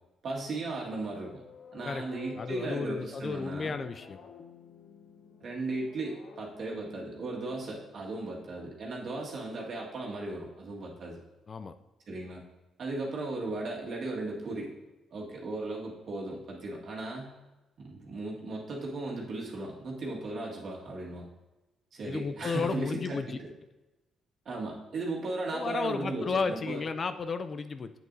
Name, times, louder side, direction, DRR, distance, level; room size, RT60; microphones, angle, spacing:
voice 1, 0.2-1.4 1.7-3.8 5.4-11.2 12.1-12.4 12.8-14.7 15.1-17.3 17.8-21.2 21.9-23.5 24.5-26.8, right 2 dB, 55° right, -2 dB, 1.8 m, -36 dB
sound 1, 0.9-8.7, left 6 dB, 65° left, 0.8 m, -51 dB
voice 2, 2.4-4.2 11.5-11.7 22.1-23.2 25.5-27.9, left 4 dB, 40° left, 10 dB, 0.4 m, -33 dB
7.9 x 7.8 x 2.7 m, 1.1 s
cardioid pair, 90°, 0 cm